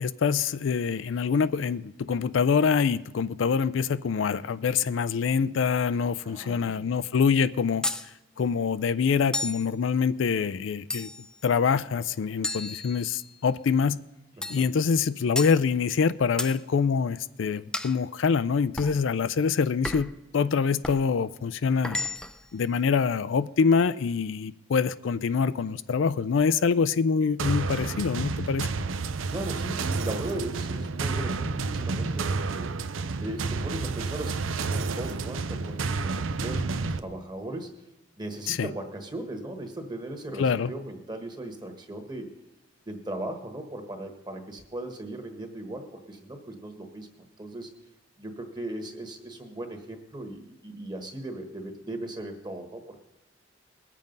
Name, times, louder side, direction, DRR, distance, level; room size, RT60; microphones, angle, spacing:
voice 1, 0.0-7.9 8.4-11.1 11.4-14.0 14.5-22.0 22.5-28.7 38.5-38.7 40.4-40.7, left 6 dB, 75° left, 15 dB, 0.4 m, -25 dB
voice 2, 6.2-6.9 14.4-14.7 29.3-32.8 33.2-37.8 38.2-42.4 42.8-47.7 48.2-53.0, right 1 dB, 20° right, 5 dB, 1.4 m, -38 dB
sound 1, 7.8-8.1 9.3-9.7 10.9-11.4 12.4-13.3 14.4-14.7 15.4-15.6 16.4-16.6 17.7-18.0 18.8-19.0 19.8-20.2 20.8-21.1 21.8-22.4, left 1 dB, 5° left, 0.4 m, -33 dB
sound 2, 27.4-37.0, right 4 dB, 80° right, 0.6 m, -30 dB
20.5 x 7.5 x 5.3 m, 0.99 s
head